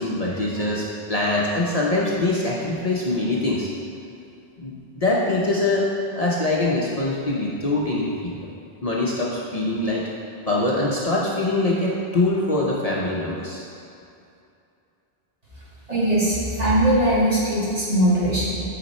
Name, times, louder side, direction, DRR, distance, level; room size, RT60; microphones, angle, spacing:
voice 1, 0.0-3.7 4.6-5.9 6.1-8.5 8.8-10.0 10.5-13.7, left 2 dB, 40° left, -5 dB, 0.8 m, -23 dB
voice 2, 15.9-18.5, right 1 dB, 35° right, -9 dB, 2.1 m, -20 dB
9.6 x 4.1 x 4.2 m, 2.6 s
omnidirectional pair, 1.1 m